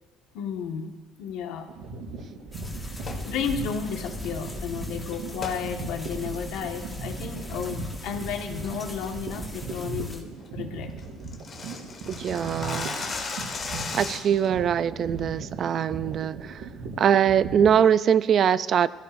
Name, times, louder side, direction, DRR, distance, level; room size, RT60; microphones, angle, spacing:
voice 1, 0.3-0.9 1.2-1.7 2.8-10.9, left 7 dB, 70° left, 4 dB, 1.5 m, -33 dB
sound 1, 1.7-17.8, right 3 dB, 60° right, 4.9 m, -38 dB
sound 2, 2.5-10.2, left 1 dB, 5° left, 1.6 m, -39 dB
sound 3, 3.0-3.3 5.4-5.6 6.1-6.2 6.7-7.0 7.4-7.7 8.0-8.3 8.7-8.8 9.2-9.4 9.8-9.9 10.2-10.3 10.5-10.6 10.8-14.5, left 4 dB, 30° left, 1.5 m, -35 dB
voice 2, 12.1-13.1 13.9-16.7 17.0-18.9, right 8 dB, 35° right, 16 dB, 0.4 m, -22 dB
23.0 x 15.5 x 2.6 m, 1.3 s
cardioid pair, 165°, 0 cm